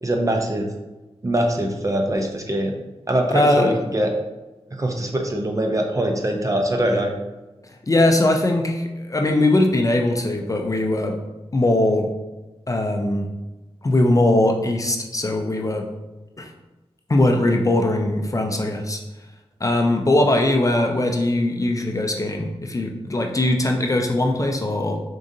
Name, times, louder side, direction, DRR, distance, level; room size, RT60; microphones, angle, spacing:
voice 1, 0.0-0.7 1.2-2.7 3.1-4.1 4.8-7.1, right 1 dB, 30° right, 2 dB, 0.6 m, -22 dB
voice 2, 3.3-3.7 7.8-11.2 11.5-12.1 12.7-13.3 13.8-15.9 16.4-16.5 17.1-19.0 19.6-25.0, left 1 dB, 30° left, 3 dB, 0.5 m, -20 dB
4.9 x 3.7 x 2.7 m, 1.1 s
wide cardioid pair, 95°, 11 cm